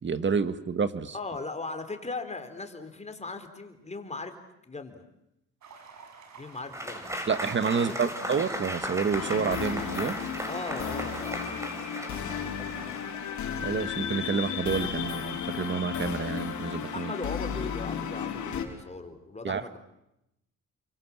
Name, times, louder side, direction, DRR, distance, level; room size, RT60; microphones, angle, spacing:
voice 1, 0.0-1.2 7.3-10.2 13.6-17.1 19.4-19.6, right 5 dB, 40° right, 12 dB, 1.8 m, -29 dB
voice 2, 1.1-4.3 4.6-5.0 6.4-7.1 7.7-8.1 10.5-11.7 16.9-19.8, left 3 dB, 20° left, 7 dB, 4.3 m, -38 dB
sound 1, 5.6-11.4, right 5 dB, 65° right, 6.2 m, -48 dB
Applause / Crowd, 6.7-13.5, equal, 10° right, 6.1 m, -37 dB
sound 2, 9.1-18.7, left 7 dB, 70° left, 4.4 m, -34 dB
29.5 x 24.5 x 7.4 m, 0.85 s
cardioid pair, 90°, 30 cm